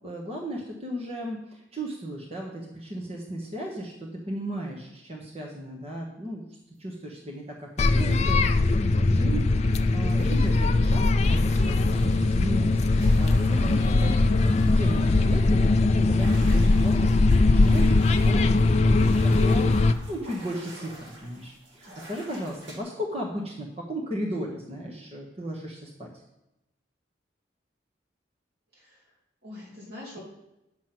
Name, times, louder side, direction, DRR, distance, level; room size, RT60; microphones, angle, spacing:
voice 1, 0.0-6.4 6.8-26.1, equal, 35° right, -1 dB, 1.2 m, -35 dB
sound 1, 7.8-19.9, left 2 dB, 35° left, 0.4 m, -21 dB
sound 2, 10.0-22.8, right 1 dB, 80° right, 2.3 m, -47 dB
voice 2, 18.9-19.3 28.7-29.1 29.4-30.2, left 2 dB, 55° right, -5 dB, 3.5 m, -44 dB
9.0 x 6.2 x 6.0 m, 0.93 s
head